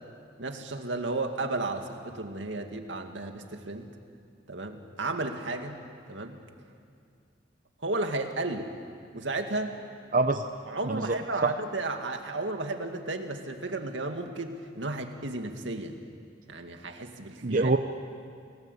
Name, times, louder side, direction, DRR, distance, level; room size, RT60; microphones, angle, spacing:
voice 1, 0.4-3.9 4.5-5.8 6.1-6.4 7.8-8.7 9.1-9.8 10.7-15.9 16.5-17.8, right 2 dB, 80° right, 5 dB, 2.2 m, -33 dB
voice 2, 17.4-17.8, right 3 dB, 45° right, 6 dB, 0.8 m, -24 dB
30.0 x 19.5 x 8.3 m, 2.3 s
head